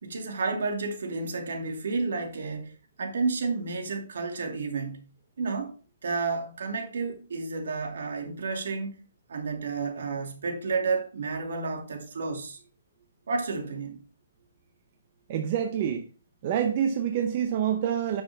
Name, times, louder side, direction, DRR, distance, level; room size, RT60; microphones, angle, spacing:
voice 1, 0.0-2.7 3.0-5.1 5.4-5.7 6.0-9.0 9.3-12.6 13.3-14.0, right 4 dB, 70° right, 2.6 m, -31 dB
voice 2, 15.3-16.1 16.4-18.2, right 9 dB, 35° right, 0.8 m, -27 dB
10.0 x 6.1 x 3.5 m
hypercardioid pair, 170°, 0 cm